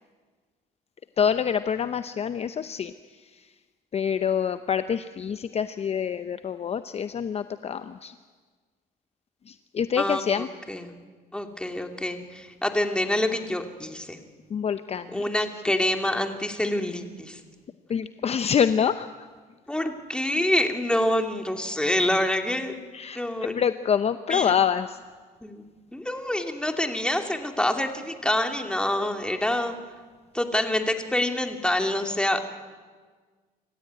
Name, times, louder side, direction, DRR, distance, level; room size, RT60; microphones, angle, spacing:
voice 1, 1.2-2.9 3.2-3.5 3.9-8.1 9.5-10.5 14.5-15.5 17.9-19.3 22.9-23.2 23.5-25.0, left 7 dB, 40° left, 11 dB, 0.7 m, -26 dB
voice 2, 11.3-14.2 15.1-17.4 19.7-22.8 23.2-23.6 24.3-24.5 25.4-25.6 25.9-29.8 30.3-32.4, left 1 dB, 5° left, 5 dB, 2.6 m, -26 dB
26.5 x 15.0 x 9.4 m, 1.5 s
cardioid pair, 100°, 17 cm